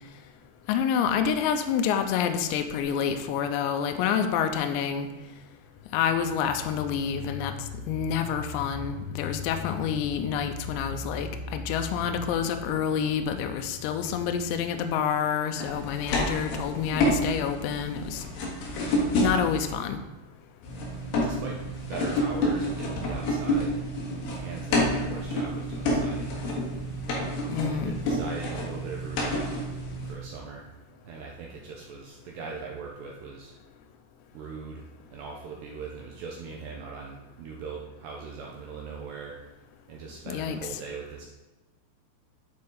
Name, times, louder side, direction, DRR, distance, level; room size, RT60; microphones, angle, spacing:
voice 1, 0.7-5.1 5.9-7.5 7.8-18.2 19.2-20.0 27.5-27.9 40.3-40.6, left 7 dB, 85° left, 6 dB, 2.6 m, -28 dB
sound 1, 15.5-19.7 20.6-30.1, left 1 dB, 60° left, 2.8 m, -29 dB
voice 2, 21.2-21.6 21.9-23.8 24.1-26.3 27.6-29.5 30.0-30.7 31.0-33.5 34.3-39.4 39.9-41.3, right 4 dB, 80° right, -1 dB, 2.5 m, -40 dB
12.0 x 4.4 x 3.7 m, 1.1 s
omnidirectional pair, 5.7 m